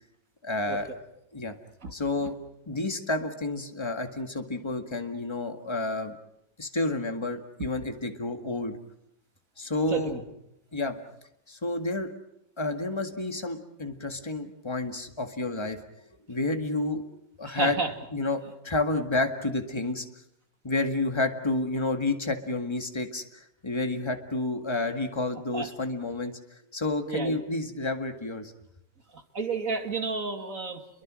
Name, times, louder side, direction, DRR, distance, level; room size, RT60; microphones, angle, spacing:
voice 1, 0.4-0.9 1.3-1.5 1.9-2.3 2.7-6.2 6.6-8.8 9.6-10.1 10.7-11.0 11.5-12.1 12.6-15.8 16.3-17.0 17.4-17.8 18.1-20.1 20.6-28.5, left 2 dB, 15° left, 6 dB, 1.8 m, -30 dB
voice 2, 9.9-10.2 17.5-17.9 25.5-25.7 27.1-27.4 29.1-31.0, right 4 dB, 45° right, 6 dB, 2.8 m, -31 dB
30.0 x 23.0 x 6.3 m, 0.79 s
omnidirectional pair, 2.0 m